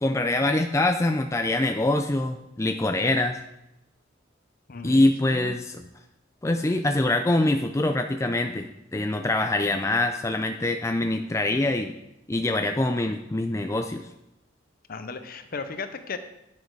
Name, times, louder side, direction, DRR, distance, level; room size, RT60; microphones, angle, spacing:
voice 1, 0.0-3.4 4.8-5.9 6.4-11.9 12.3-14.0, left 2 dB, 15° left, 6 dB, 0.4 m, -24 dB
voice 2, 5.2-5.5 14.9-16.2, left 4 dB, 50° left, 9 dB, 0.8 m, -35 dB
9.4 x 6.5 x 4.7 m, 0.88 s
head